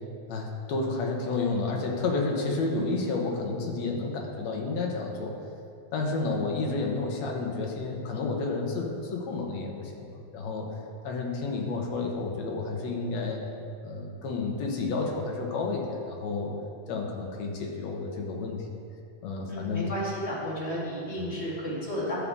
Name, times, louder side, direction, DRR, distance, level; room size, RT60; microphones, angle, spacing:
voice 1, 0.3-5.4 5.9-10.7 11.0-13.4 13.8-16.5 16.9-18.6 19.2-19.9 21.2-21.4, left 3 dB, 70° left, 0 dB, 2.3 m, -31 dB
voice 2, 19.5-22.1, equal, 25° left, -8 dB, 2.5 m, -32 dB
12.0 x 7.4 x 3.7 m, 2.5 s
omnidirectional pair, 3.3 m